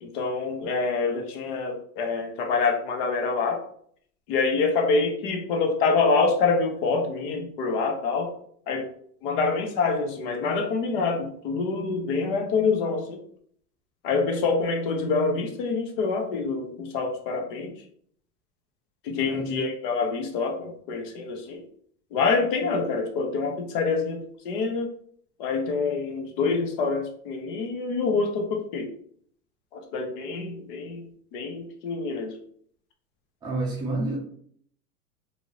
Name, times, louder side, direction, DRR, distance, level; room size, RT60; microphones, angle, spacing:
voice 1, 0.0-3.6 4.3-8.3 8.7-8.9 9.2-13.2 14.0-17.7 19.0-21.6 22.1-24.9 25.4-28.9 29.7-31.0 31.3-32.3, left 4 dB, 35° left, 3 dB, 0.5 m, -26 dB
voice 2, 19.2-19.6 33.4-34.2, right 2 dB, 10° right, -4 dB, 0.6 m, -29 dB
2.7 x 2.6 x 3.0 m, 0.62 s
hypercardioid pair, 140°, 49 cm